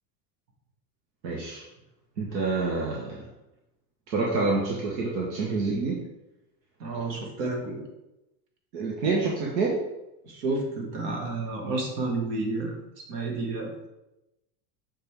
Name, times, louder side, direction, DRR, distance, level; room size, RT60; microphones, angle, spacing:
voice 1, 1.2-1.6 2.2-3.2 4.1-6.1 8.7-9.8, right 3 dB, 85° right, -3 dB, 1.4 m, -27 dB
voice 2, 6.8-7.8 10.2-12.8 13.1-13.7, right 3 dB, 70° right, 1 dB, 1.9 m, -30 dB
6.8 x 4.2 x 3.4 m, 0.94 s
supercardioid pair, 115°, 50 cm